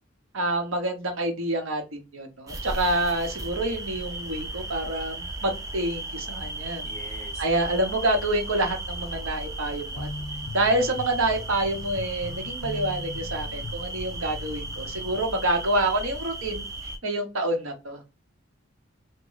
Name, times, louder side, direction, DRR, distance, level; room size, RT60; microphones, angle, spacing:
voice 1, 0.3-7.0 7.4-10.1 10.5-16.6 17.0-18.0, right 1 dB, 85° right, 4 dB, 0.9 m, -27 dB
sound 1, 2.5-17.0, right 2 dB, 15° right, 0.3 m, -36 dB
voice 2, 6.8-8.0, equal, 15° left, 1 dB, 0.9 m, -45 dB
sound 2, 10.0-15.3, left 3 dB, 60° left, 0.5 m, -40 dB
3.0 x 2.1 x 3.8 m, 0.28 s
head